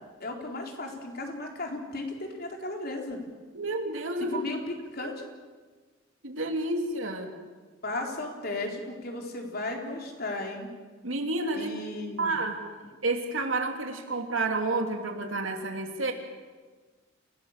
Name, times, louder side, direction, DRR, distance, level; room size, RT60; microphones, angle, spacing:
voice 1, 0.2-3.2 4.3-5.2 7.8-10.7 11.5-12.3, left 2 dB, 50° left, 1 dB, 3.9 m, -35 dB
voice 2, 3.5-4.4 6.2-7.3 11.0-11.7 12.2-12.6 13.0-16.1, right 2 dB, 85° right, 4 dB, 3.0 m, -30 dB
28.5 x 17.5 x 7.4 m, 1.4 s
head